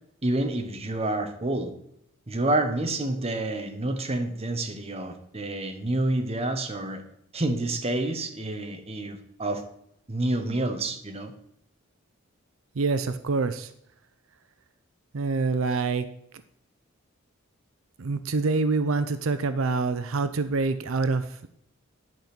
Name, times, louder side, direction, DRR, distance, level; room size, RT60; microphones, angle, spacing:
voice 1, 0.2-1.7 2.3-7.0 7.3-9.6 10.1-11.3, right 1 dB, 30° right, 6 dB, 1.1 m, -28 dB
voice 2, 12.8-13.7 15.1-16.1 18.0-21.5, right 3 dB, 80° right, 11 dB, 0.6 m, -26 dB
11.0 x 5.2 x 6.0 m, 0.74 s
head